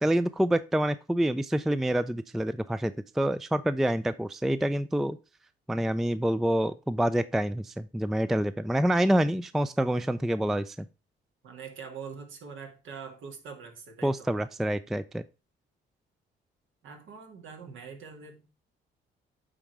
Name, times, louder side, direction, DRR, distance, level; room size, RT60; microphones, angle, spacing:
voice 1, 0.0-5.2 5.7-10.9 14.0-15.2, right 1 dB, ahead, 0.3 m, -27 dB
voice 2, 11.4-14.3 16.8-18.6, right 6 dB, 80° right, 2.0 m, -44 dB
8.8 x 3.8 x 4.6 m
cardioid pair, 90°, 20 cm